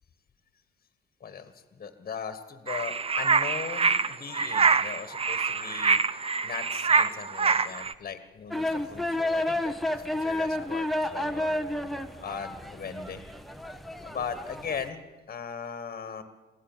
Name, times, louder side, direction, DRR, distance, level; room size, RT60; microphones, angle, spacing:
voice 1, 1.2-6.0 6.4-11.6 12.2-13.2 14.0-16.2, left 6 dB, 45° left, 10 dB, 1.6 m, -38 dB
sound 1, 2.7-7.9, right 5 dB, 30° right, 0.7 m, -25 dB
sound 2, 8.5-14.9, left 1 dB, ahead, 1.2 m, -31 dB
23.0 x 16.0 x 7.4 m, 1.2 s
cardioid pair, 90°, 20 cm